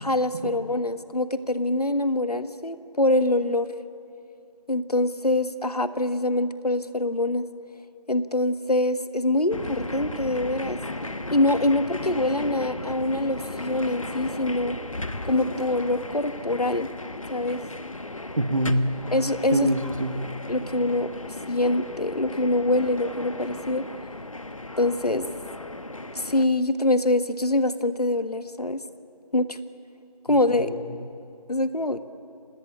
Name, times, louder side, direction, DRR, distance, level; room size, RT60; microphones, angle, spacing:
voice 1, 0.0-3.7 4.7-7.5 8.1-10.8 11.3-14.8 15.2-16.9 17.3-17.6 19.1-19.7 20.5-21.1 21.5-23.8 24.8-25.3 26.1-28.8 29.3-29.6 30.3-30.7 31.5-32.0, left 1 dB, 70° left, 11 dB, 1.5 m, -24 dB
sound 1, 9.5-26.5, left 2 dB, 55° left, 1.2 m, -36 dB
voice 2, 18.4-18.9 19.5-20.2 30.3-31.0, right 1 dB, 55° right, 7 dB, 1.9 m, -26 dB
27.5 x 20.0 x 8.5 m, 2.6 s
figure-of-eight pair, 175°, 20 cm